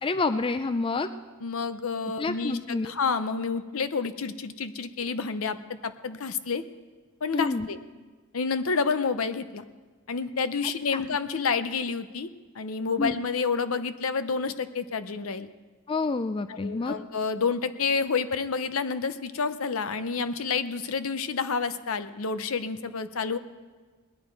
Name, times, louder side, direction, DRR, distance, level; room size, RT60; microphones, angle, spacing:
voice 1, 0.0-1.1 2.0-2.9 7.3-7.7 10.9-11.0 13.0-13.2 15.9-17.0, left 3 dB, 25° left, 11 dB, 0.4 m, -28 dB
voice 2, 1.4-2.6 2.8-6.6 7.2-7.8 8.3-9.6 10.1-12.3 12.5-15.5 16.5-23.4, left 5 dB, 75° left, 12 dB, 0.7 m, -29 dB
19.5 x 10.5 x 4.7 m, 1.4 s
head